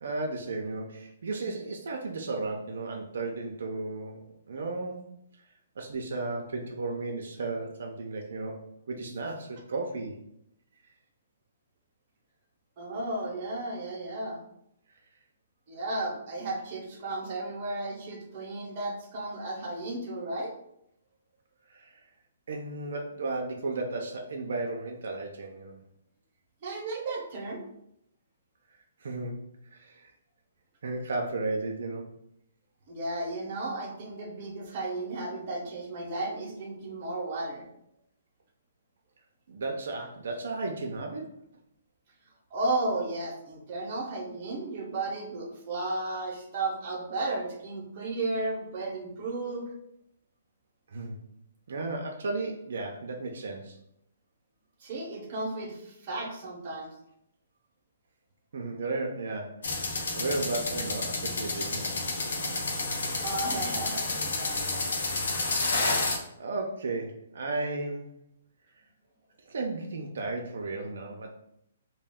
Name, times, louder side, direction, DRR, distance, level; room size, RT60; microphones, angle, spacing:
voice 1, 0.0-5.1 5.8-10.2 21.7-22.0 22.5-25.8 29.0-29.4 29.7-30.1 30.8-32.2 39.5-41.3 50.9-51.2 51.7-53.8 58.5-61.9 66.4-68.1 69.5-71.3, right 3 dB, 70° right, 1 dB, 0.4 m, -34 dB
voice 2, 12.8-14.4 15.7-20.5 26.6-27.6 32.9-37.7 42.5-49.7 54.8-56.9 63.2-64.9, right 2 dB, 35° right, -2 dB, 0.7 m, -34 dB
sound 1, 59.6-66.2, left 3 dB, 80° left, 0.6 m, -30 dB
2.3 x 2.2 x 3.4 m, 0.76 s
hypercardioid pair, 165°, 0 cm